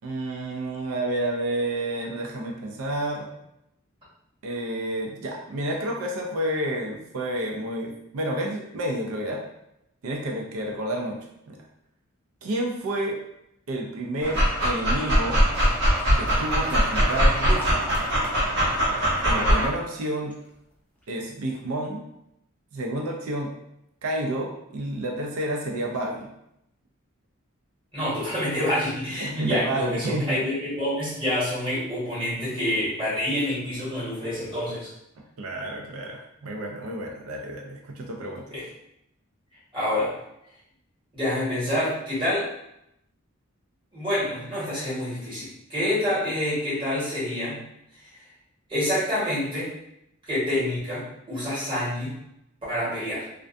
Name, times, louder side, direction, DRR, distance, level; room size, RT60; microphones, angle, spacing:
voice 1, 0.0-3.3 4.4-9.4 10.0-11.2 11.5-11.6 12.4-13.2 13.7-15.4 16.1-17.9 18.9-20.3 21.1-22.0 22.7-23.5 24.0-26.3 29.2-30.4 35.4-38.5, right 1 dB, 85° right, 0 dB, 0.4 m, -30 dB
Dog, 14.2-19.7, equal, 55° right, 1.0 m, -22 dB
sound 1, 15.5-18.8 19.0-20.5 21.0-21.1, equal, 5° left, 0.4 m, -40 dB
voice 2, 27.9-34.9 38.5-38.6 39.7-40.1 41.1-42.4 43.9-47.6 48.7-49.7 50.3-52.2 52.7-53.2, left 1 dB, 25° right, -9 dB, 1.3 m, -27 dB
2.4 x 2.2 x 2.5 m, 0.80 s
head